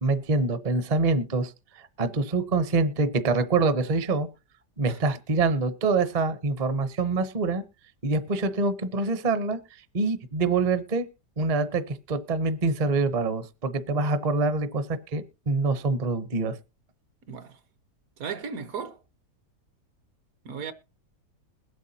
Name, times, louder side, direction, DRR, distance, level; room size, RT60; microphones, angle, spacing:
voice 1, 0.0-4.3 4.8-7.6 8.0-9.6 9.9-11.1 11.4-14.9 15.1-16.6, right 3 dB, 35° right, 0.7 m, -25 dB
voice 2, 17.3-17.6 18.2-19.0 20.4-20.7, right 6 dB, 65° right, 1.2 m, -35 dB
21.0 x 8.2 x 2.8 m
omnidirectional pair, 1.8 m